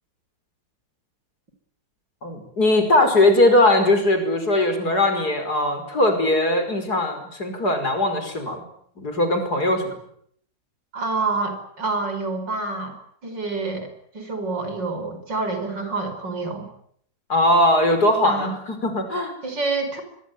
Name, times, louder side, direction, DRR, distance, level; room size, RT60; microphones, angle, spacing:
voice 1, 2.2-8.6 9.0-9.8 17.3-19.3, left 1 dB, 60° left, 7 dB, 5.8 m, -20 dB
voice 2, 10.9-12.9 13.2-13.9 14.1-16.7 18.2-18.5 19.4-20.0, right 3 dB, 80° right, 7 dB, 6.1 m, -27 dB
24.5 x 22.0 x 9.4 m, 0.67 s
omnidirectional pair, 1.9 m